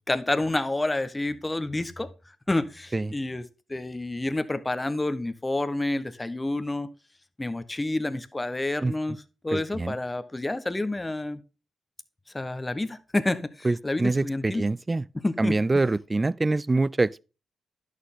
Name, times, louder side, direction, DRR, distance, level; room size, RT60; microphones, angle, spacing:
voice 1, 0.1-2.1 2.5-3.4 3.7-6.9 7.4-9.2 9.4-11.4 12.3-14.6 15.2-15.8, left 2 dB, 20° left, 1.1 m, -29 dB
voice 2, 9.5-10.0 13.6-15.0 15.4-17.2, right 2 dB, 30° right, 0.4 m, -25 dB
11.0 x 6.5 x 3.7 m
supercardioid pair, 45°, 0 cm